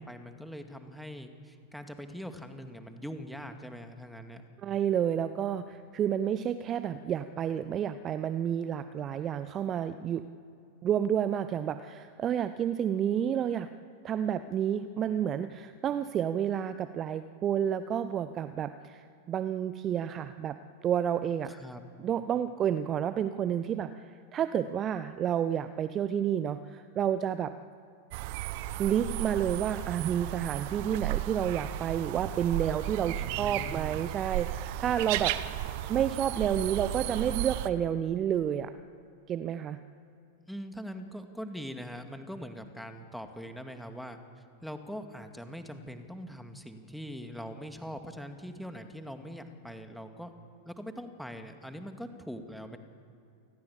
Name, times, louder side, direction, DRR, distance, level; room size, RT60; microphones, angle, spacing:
voice 1, 0.0-4.4 21.6-21.9 33.2-34.0 40.4-44.2 44.6-50.3 50.6-52.8, equal, ahead, 6 dB, 2.2 m, -42 dB
voice 2, 4.6-10.3 10.8-13.7 14.0-21.5 22.0-27.6 28.8-35.6 35.9-38.7 39.3-39.8, right 9 dB, 30° right, 12 dB, 0.7 m, -30 dB
sound 1, 28.1-37.7, right 14 dB, 50° right, 1.0 m, -34 dB
29.0 x 20.5 x 7.3 m, 2.6 s
figure-of-eight pair, 90°, 0 cm